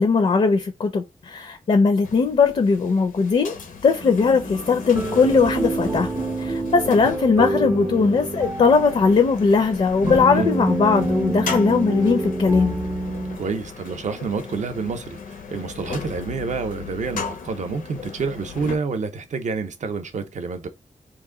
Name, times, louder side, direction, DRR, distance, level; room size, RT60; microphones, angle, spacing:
voice 1, 0.0-3.6 3.8-6.1 6.4-12.8, left 4 dB, 45° left, 0.4 m, -19 dB
sound 1, 2.0-18.8, left 5 dB, 85° left, 0.7 m, -36 dB
sound 2, 4.0-13.4, right 2 dB, 15° right, 0.3 m, -27 dB
voice 2, 13.4-20.7, right 4 dB, 60° right, 0.6 m, -28 dB
2.9 x 2.5 x 3.6 m
wide cardioid pair, 170°, 14 cm